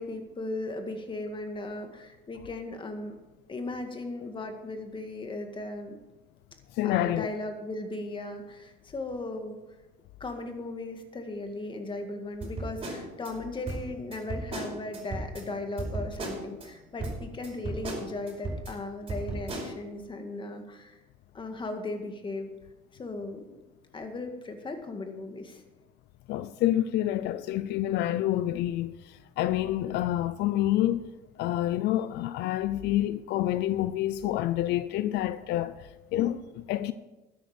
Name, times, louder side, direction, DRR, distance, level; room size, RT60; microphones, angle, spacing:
voice 1, 0.0-3.2 3.5-6.0 6.8-9.6 10.2-21.0 21.3-22.5 22.9-23.4 23.9-25.6, left 2 dB, 30° left, 2.0 m, -37 dB
voice 2, 6.8-7.3 26.3-31.1 31.4-35.8 36.1-36.9, left 13 dB, 85° left, 0.5 m, -28 dB
sound 1, 12.4-13.3 13.7-15.4 15.8-16.7 17.0-18.7 19.1-19.7, right 2 dB, 35° right, 4.9 m, -35 dB
12.5 x 10.5 x 5.0 m
cardioid pair, 110°, 17 cm